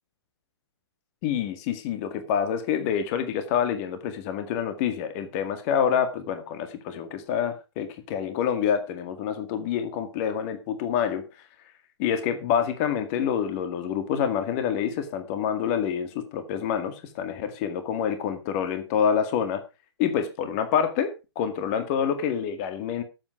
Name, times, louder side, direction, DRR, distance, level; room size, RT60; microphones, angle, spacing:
voice 1, 1.2-11.2 12.0-19.6 20.0-23.0, left 8 dB, 30° left, 9 dB, 1.9 m, -27 dB
13.0 x 8.1 x 4.9 m, 0.29 s
figure-of-eight pair, 125°, 15 cm